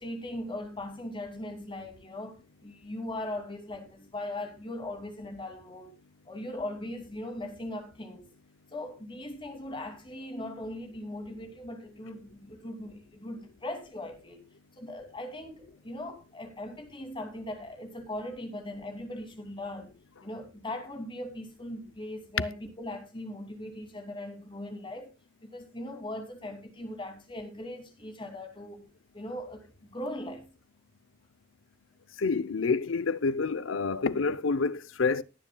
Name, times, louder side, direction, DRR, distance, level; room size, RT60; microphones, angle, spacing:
voice 1, 0.0-5.9 6.2-8.3 8.7-14.4 14.8-19.9 20.2-25.1 25.4-28.8 29.1-30.5, left 1 dB, 25° left, 2.6 m, -39 dB
voice 2, 32.2-35.2, left 4 dB, 85° left, 0.7 m, -28 dB
20.0 x 9.8 x 2.3 m
head